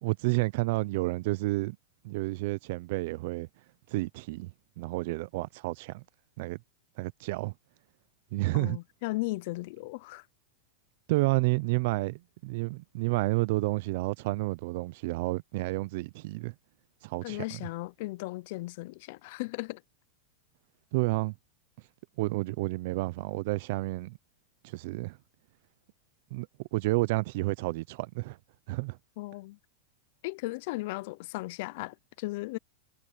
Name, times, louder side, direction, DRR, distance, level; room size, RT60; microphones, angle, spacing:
voice 1, 0.0-1.8 2.0-3.5 3.9-4.5 4.8-6.0 6.4-6.6 7.0-7.5 8.3-8.8 11.1-16.5 17.0-17.6 20.9-21.3 22.2-24.2 24.6-25.2 26.3-26.5 26.7-28.4 28.7-29.0, right 22 dB, 55° right, 0.5 m, -30 dB
voice 2, 8.5-10.2 17.2-19.8 29.2-29.6 30.2-32.6, left 21 dB, 50° left, 0.5 m, -36 dB
supercardioid pair, 160°, 0 cm